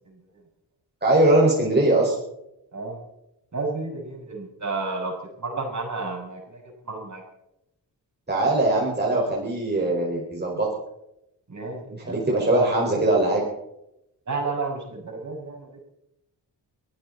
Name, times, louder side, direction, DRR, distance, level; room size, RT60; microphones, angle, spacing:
voice 1, 1.0-2.1 8.3-10.7 12.0-13.4, right 2 dB, 25° right, -3 dB, 5.0 m, -21 dB
voice 2, 3.5-5.1 5.4-6.6 6.9-7.2 11.5-12.2 14.3-15.7, right 3 dB, 40° right, 1 dB, 6.7 m, -31 dB
23.5 x 15.0 x 4.1 m, 0.84 s
cardioid pair, 75°, 42 cm